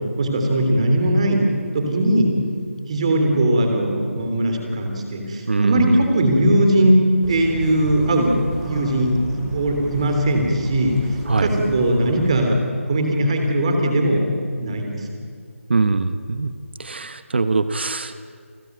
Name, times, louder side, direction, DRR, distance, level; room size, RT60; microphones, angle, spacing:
voice 1, 0.0-1.5 1.7-2.3 2.9-7.0 7.3-11.0 11.4-12.6 12.9-14.3 14.6-15.0, right 1 dB, 25° right, 3 dB, 3.3 m, -19 dB
voice 2, 5.5-6.1 11.3-11.5 15.7-16.5 16.8-18.1, right 3 dB, 50° right, 11 dB, 1.1 m, -22 dB
sound 1, 7.2-12.5, right 1 dB, 5° right, 2.1 m, -35 dB
29.0 x 14.5 x 9.4 m, 2.1 s
figure-of-eight pair, 175°, 8 cm